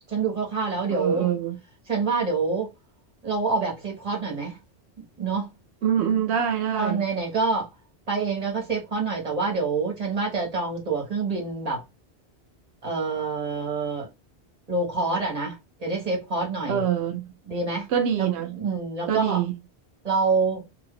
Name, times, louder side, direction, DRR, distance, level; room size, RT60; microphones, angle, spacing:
voice 1, 0.1-1.3 1.9-2.7 3.2-4.6 5.2-5.5 6.7-7.7 8.1-11.8 12.8-14.1 14.7-16.8 17.5-17.9 18.2-19.4 20.0-20.7, right 4 dB, 35° right, 1.5 m, -26 dB
voice 2, 0.9-1.6 5.8-7.0 16.7-17.2 17.9-18.6 19.1-19.5, right 9 dB, 90° right, 0.9 m, -25 dB
2.7 x 2.7 x 3.7 m
omnidirectional pair, 1.1 m